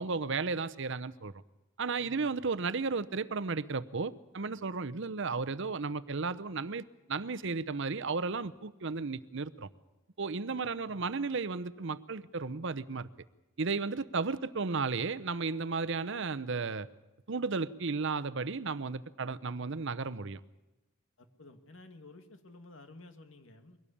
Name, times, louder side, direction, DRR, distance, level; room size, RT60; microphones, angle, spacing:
voice 1, 0.0-1.3 1.8-9.7 10.2-13.1 13.6-16.9 17.3-20.4, right 4 dB, 65° right, 14 dB, 0.8 m, -34 dB
voice 2, 1.9-2.3 10.5-11.0 15.8-15.9 21.2-23.8, left 2 dB, 70° left, 7 dB, 2.3 m, -53 dB
23.0 x 17.5 x 8.6 m, 1.0 s
head